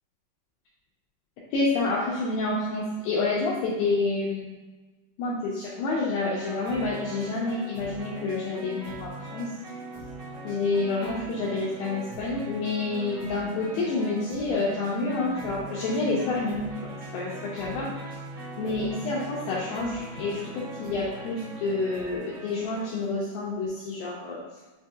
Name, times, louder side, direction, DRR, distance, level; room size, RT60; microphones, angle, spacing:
voice 1, 1.5-4.6 5.2-9.5 10.4-17.9 18.6-24.4, left 3 dB, 85° left, -5 dB, 2.1 m, -28 dB
sound 1, 6.4-23.1, right 2 dB, 75° right, 1.1 m, -41 dB
6.6 x 2.7 x 2.3 m, 1.2 s
omnidirectional pair, 4.8 m